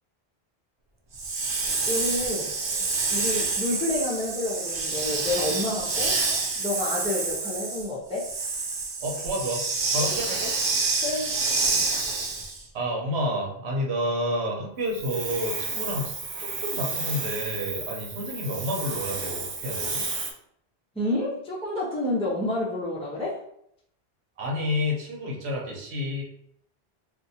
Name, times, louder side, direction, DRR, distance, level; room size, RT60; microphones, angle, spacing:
Hiss, 1.1-12.6 14.9-20.3, right 3 dB, 50° right, 0.3 m, -29 dB
voice 1, 1.8-2.6 3.1-6.2 6.6-8.3 11.0-11.3 20.9-23.4, left 1 dB, 5° left, -6 dB, 0.7 m, -29 dB
voice 2, 9.0-9.6 9.9-10.5 12.7-20.0 24.4-26.2, equal, 85° right, -1 dB, 1.1 m, -30 dB
2.6 x 2.4 x 4.1 m, 0.72 s
omnidirectional pair, 1.1 m